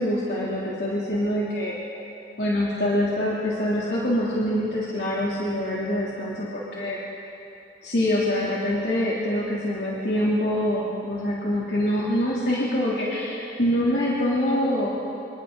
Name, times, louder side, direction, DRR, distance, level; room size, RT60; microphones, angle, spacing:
voice 1, 0.0-1.7 2.4-7.0 7.8-14.9, left 1 dB, 70° left, -7 dB, 3.2 m, -25 dB
29.0 x 27.0 x 4.0 m, 2.7 s
head